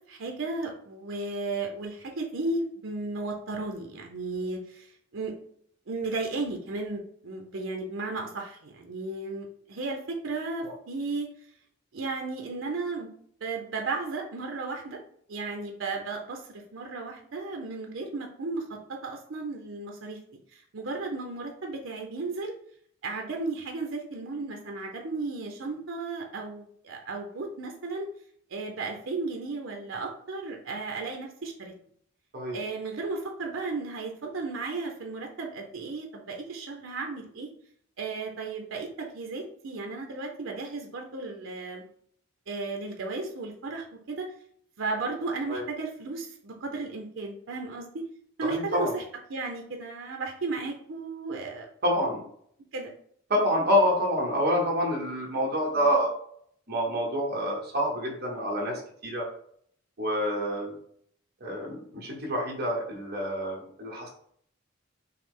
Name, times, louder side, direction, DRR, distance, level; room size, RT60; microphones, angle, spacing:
voice 1, 0.1-5.3 5.9-11.3 11.9-13.1 13.4-15.0 15.3-20.2 20.5-22.5 23.0-28.1 28.5-31.7 32.5-37.5 38.0-41.8 42.5-44.3 44.8-48.1 48.4-49.0 49.3-51.7 52.7-52.9, right 3 dB, 70° right, 2 dB, 0.6 m, -34 dB
voice 2, 48.4-48.9 51.8-52.2 53.3-56.1 56.7-59.3 60.0-60.7 61.4-64.1, equal, 50° right, -2 dB, 1.0 m, -27 dB
5.6 x 2.0 x 3.7 m, 0.64 s
head